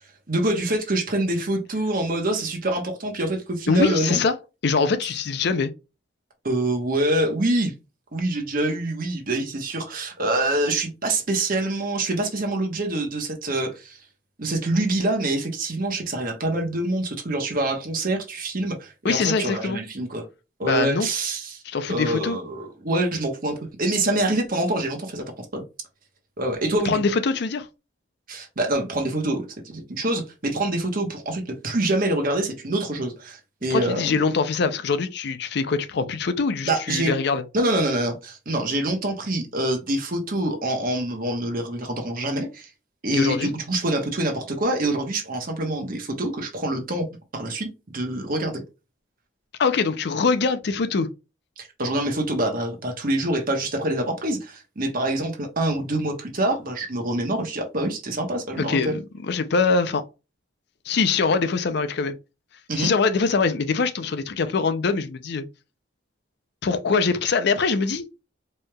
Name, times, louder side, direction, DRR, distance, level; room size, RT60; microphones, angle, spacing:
voice 1, 0.3-4.2 6.4-7.7 8.1-14.0 14.4-20.2 20.6-21.6 21.9-25.3 25.5-25.6 26.4-27.0 28.3-29.4 29.7-34.1 36.6-37.2 37.5-42.7 43.0-47.1 47.3-48.6 51.6-59.0 62.7-62.9, right 1 dB, 45° right, 1.0 m, -25 dB
voice 2, 3.7-4.3 4.6-5.7 19.0-19.8 20.6-21.1 21.7-22.4 26.8-27.7 33.7-37.4 43.1-43.5 49.6-51.1 58.6-60.0 60.9-62.2 62.8-65.4 66.6-68.0, left 4 dB, 60° left, 0.5 m, -23 dB
4.5 x 3.2 x 2.2 m
head